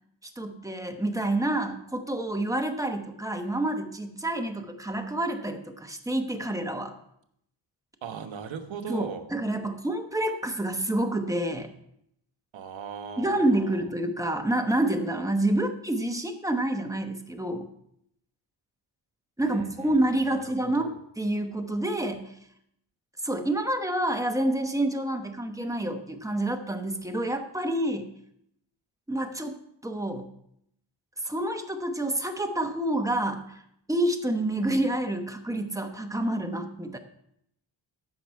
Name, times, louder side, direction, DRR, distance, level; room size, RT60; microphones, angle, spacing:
voice 1, 0.4-6.9 8.9-11.7 13.2-17.7 19.4-22.3 23.2-28.1 29.1-29.6 29.8-30.3 31.2-33.6 33.9-37.0, right 1 dB, 5° right, 5 dB, 1.1 m, -28 dB
voice 2, 8.0-9.3 12.5-13.8 19.4-20.0 20.2-21.0, right 6 dB, 80° right, 6 dB, 1.2 m, -39 dB
14.0 x 5.9 x 4.6 m, 0.74 s
cardioid pair, 105°, 46 cm